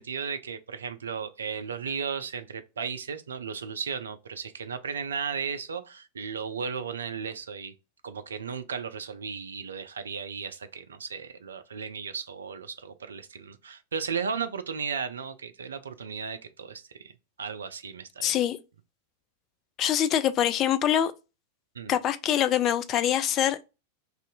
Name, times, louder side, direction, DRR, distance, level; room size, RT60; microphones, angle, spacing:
voice 1, 0.0-7.7 8.0-17.1 17.4-18.4 21.7-21.9, right 6 dB, 70° right, 0.3 m, -35 dB
voice 2, 18.2-18.6 19.8-21.1 21.9-23.6, left 10 dB, 35° left, 0.3 m, -24 dB
2.6 x 2.4 x 3.9 m
figure-of-eight pair, 90°, 0 cm